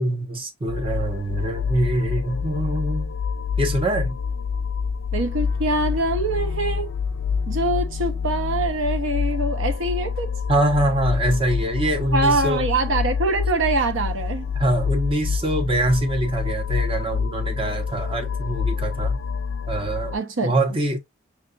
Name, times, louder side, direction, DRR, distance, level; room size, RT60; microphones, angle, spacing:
voice 1, 0.0-3.1 3.6-4.2 10.5-12.6 14.5-19.2 19.7-20.2 20.4-21.0, right 1 dB, 30° right, 0.8 m, -24 dB
sound 1, 0.7-20.2, left 5 dB, 70° left, 0.4 m, -27 dB
voice 2, 5.1-6.9 7.5-10.3 12.1-14.5 20.1-20.5, right 2 dB, 90° right, 0.7 m, -24 dB
5.7 x 2.3 x 2.4 m
head